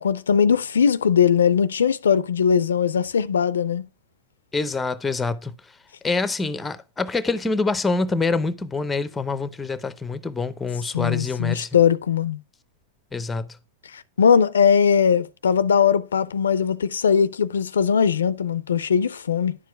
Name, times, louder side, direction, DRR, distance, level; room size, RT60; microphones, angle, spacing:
voice 1, 0.0-3.9 10.9-12.4 13.9-19.5, left 7 dB, 90° left, 0.4 m, -20 dB
voice 2, 4.5-5.5 6.0-11.7 13.1-13.6, left 3 dB, 10° left, 0.6 m, -25 dB
10.0 x 4.7 x 4.6 m
hypercardioid pair, 115°, 0 cm